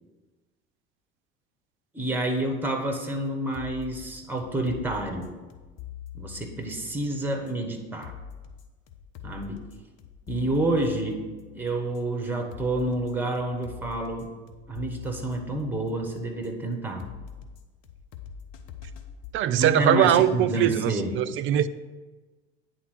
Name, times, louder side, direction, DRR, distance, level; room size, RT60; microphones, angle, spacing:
voice 1, 1.9-5.3 6.1-8.1 9.2-9.6 10.3-11.2 11.5-14.3 14.7-17.0 19.6-21.1, right 1 dB, 5° right, 1.5 m, -29 dB
sound 1, 3.2-19.3, left 8 dB, 55° left, 0.9 m, -44 dB
voice 2, 19.3-21.7, right 11 dB, 40° right, 0.5 m, -22 dB
9.3 x 3.7 x 6.8 m
hypercardioid pair, 70°, 31 cm